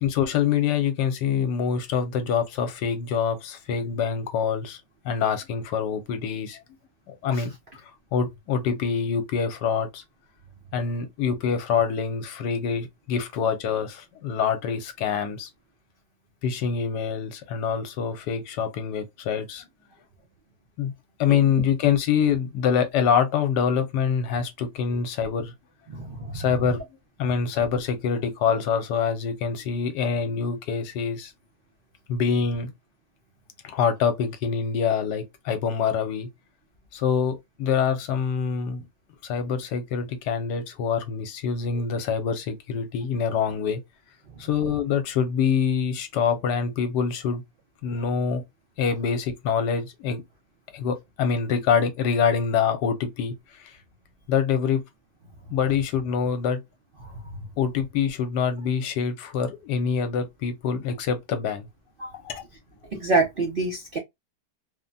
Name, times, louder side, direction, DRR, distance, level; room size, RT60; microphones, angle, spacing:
voice 1, 0.0-4.8 5.0-6.6 7.1-7.5 8.1-10.0 10.7-15.5 16.4-19.7 20.8-20.9 21.2-25.5 26.3-26.8 27.2-31.3 32.1-32.7 33.6-36.3 36.9-38.8 39.2-43.8 44.4-47.4 47.8-48.4 48.8-50.2 50.7-53.3 54.3-54.8 55.5-56.6 57.6-61.7 62.2-62.4, left 7 dB, 75° left, 1.3 m, -25 dB
voice 2, 21.3-21.6 25.9-26.5 57.0-57.1 62.0-62.2 62.9-64.0, right 3 dB, 65° right, 0.5 m, -27 dB
3.3 x 2.1 x 2.5 m
omnidirectional pair, 1.9 m